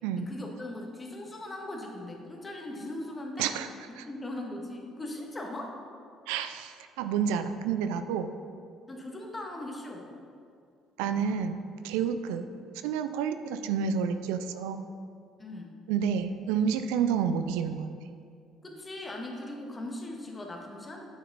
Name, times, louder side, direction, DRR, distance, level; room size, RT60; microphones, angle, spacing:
voice 1, 0.2-3.5 3.9-5.8 8.9-10.1 15.4-15.8 18.6-21.0, left 1 dB, 25° left, 1 dB, 1.7 m, -39 dB
voice 2, 3.4-3.7 4.0-4.1 6.3-8.3 11.0-11.6 11.8-12.5 12.8-14.8 15.9-17.9, right 7 dB, 75° right, 9 dB, 0.4 m, -29 dB
8.7 x 6.4 x 4.1 m, 2.3 s
hypercardioid pair, 50°, 0 cm